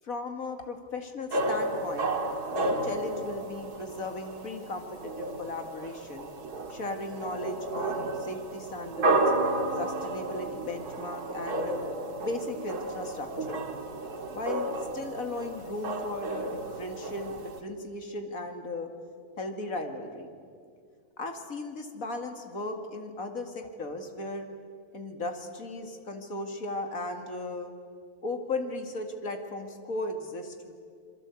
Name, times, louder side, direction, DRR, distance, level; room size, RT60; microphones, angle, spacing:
voice 1, 0.0-2.2 2.5-6.3 6.7-9.2 9.8-11.9 12.2-13.6 14.3-18.9 19.4-20.3 21.2-24.5 24.9-27.7 28.2-30.7, left 2 dB, 60° left, 5 dB, 2.6 m, -36 dB
sound 1, 1.3-17.6, right 2 dB, 90° right, 2.4 m, -32 dB
27.0 x 23.0 x 8.3 m, 2.1 s
omnidirectional pair, 1.6 m